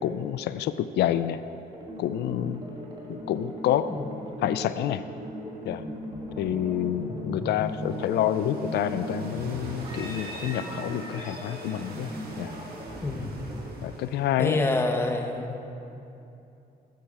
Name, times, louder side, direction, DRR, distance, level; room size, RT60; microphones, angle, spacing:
voice 1, 0.0-1.4 2.0-2.6 3.1-3.9 4.4-5.0 5.7-5.8 6.4-12.1 12.4-12.5 13.8-14.6, left 11 dB, 85° left, 12 dB, 0.4 m, -28 dB
sound 1, 1.7-13.6, equal, 25° right, 2.1 m, -37 dB
sound 2, 7.5-14.6, right 2 dB, 65° right, 1.8 m, -45 dB
voice 2, 13.0-13.4 14.4-15.7, left 2 dB, 15° left, 4 dB, 0.8 m, -27 dB
12.5 x 8.9 x 4.8 m, 2.8 s
cardioid pair, 145°, 17 cm